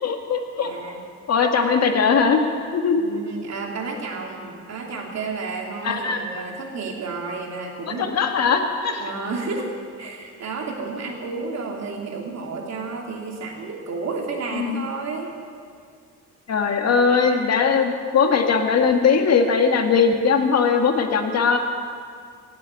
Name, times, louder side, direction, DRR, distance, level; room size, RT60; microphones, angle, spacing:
voice 1, 0.0-0.7 1.3-2.4 2.7-3.0 5.8-6.2 7.9-9.1 14.5-14.8 16.5-21.6, left 5 dB, 55° left, 4 dB, 1.7 m, -20 dB
voice 2, 0.6-1.0 2.9-8.2 9.0-9.6 10.0-15.3, right 4 dB, 60° right, 0 dB, 2.9 m, -31 dB
17.0 x 8.5 x 8.4 m, 2.2 s
cardioid pair, 90°, 30 cm